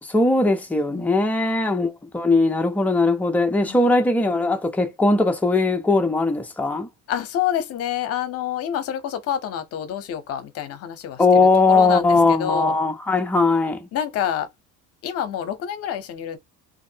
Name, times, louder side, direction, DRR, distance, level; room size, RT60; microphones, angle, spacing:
voice 1, 0.0-6.9 11.2-13.9, left 3 dB, 5° left, 0.4 m, -19 dB
voice 2, 7.1-12.8 13.9-14.5 15.0-16.4, left 10 dB, 40° left, 0.7 m, -28 dB
3.1 x 2.5 x 2.7 m
cardioid pair, 175°, 36 cm